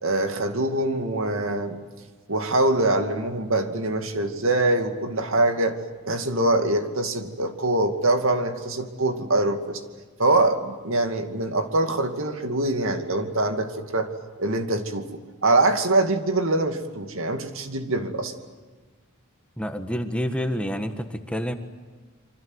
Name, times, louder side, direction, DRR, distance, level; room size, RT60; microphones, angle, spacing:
voice 1, 0.0-1.8 2.3-5.8 6.1-9.8 10.2-14.1 14.4-18.3, right 2 dB, 65° right, 7 dB, 2.4 m, -24 dB
voice 2, 19.6-21.5, equal, 5° left, 7 dB, 1.5 m, -28 dB
28.0 x 24.5 x 8.0 m, 1.4 s
head